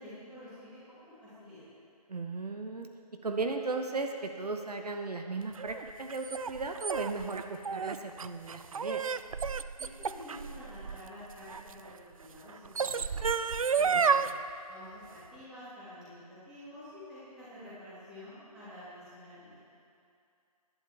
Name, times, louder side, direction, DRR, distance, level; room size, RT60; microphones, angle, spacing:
voice 1, 0.0-1.6 9.8-13.4 13.8-14.4 14.7-19.6, left 1 dB, 5° right, -13 dB, 2.2 m, -49 dB
voice 2, 2.1-2.9 3.2-9.0 13.9-14.0, right 3 dB, 75° right, 5 dB, 1.1 m, -36 dB
sound 1, 5.6-11.7 12.5-14.3, right 6 dB, 60° right, 0.4 m, -31 dB
16.0 x 11.0 x 3.5 m, 2.5 s
figure-of-eight pair, 170°, 20 cm